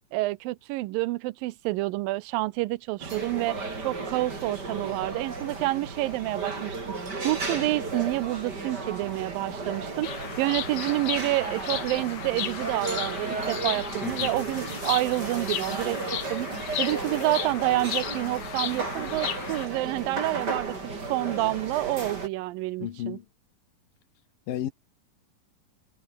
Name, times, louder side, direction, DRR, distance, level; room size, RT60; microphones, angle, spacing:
voice 1, 0.1-6.8 7.2-16.5 16.8-20.8 21.1-23.2, right 19 dB, 85° right, 2.4 m, -28 dB
sound 1, 3.0-22.3, right 3 dB, 30° right, 4.5 m, -34 dB
Bird vocalization bird call bird song, 10.0-19.7, left 10 dB, 60° left, 2.9 m, -35 dB
voice 2, 14.0-14.4 22.8-23.3 24.5-24.7, left 11 dB, 75° left, 3.2 m, -33 dB
omnidirectional pair, 4.0 m